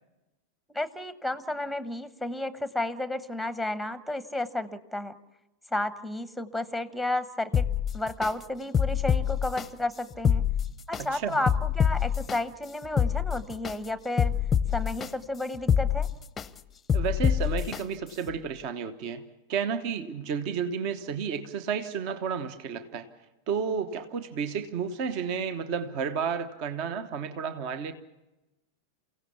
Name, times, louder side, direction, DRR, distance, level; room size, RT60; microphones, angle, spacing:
voice 1, 0.7-5.1 5.7-7.7 7.9-10.5 10.9-14.3 14.7-16.1, left 1 dB, ahead, 14 dB, 1.0 m, -32 dB
sound 1, 7.5-8.3 8.7-9.7 10.1-11.0 11.5-12.4 12.8-13.7 14.2-15.1 15.5-16.5 16.9-17.8 18.3-18.4, left 8 dB, 15° left, 0.7 m, -25 dB
voice 2, 11.0-11.4 16.9-19.2 19.5-23.1 23.5-27.9, right 6 dB, 45° right, 12 dB, 1.1 m, -31 dB
29.0 x 16.5 x 7.0 m, 1.0 s
figure-of-eight pair, 90°, 0 cm